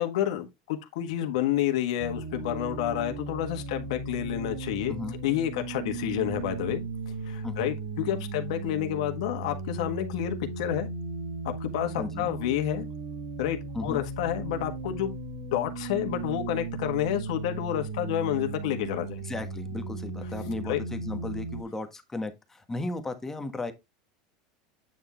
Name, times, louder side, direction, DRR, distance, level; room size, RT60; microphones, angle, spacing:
voice 1, 0.0-4.9 5.2-6.8 7.2-10.9 11.4-12.9 13.4-15.1 15.5-19.2 20.7-20.8, left 12 dB, 75° left, 1.6 m, -29 dB
sound 1, 2.0-21.6, right 3 dB, 90° right, 1.8 m, -36 dB
voice 2, 4.9-5.2 7.4-7.7 12.0-12.3 13.7-14.0 19.2-23.7, left 2 dB, 10° left, 1.3 m, -35 dB
9.2 x 3.6 x 4.3 m
supercardioid pair, 130°, 3 cm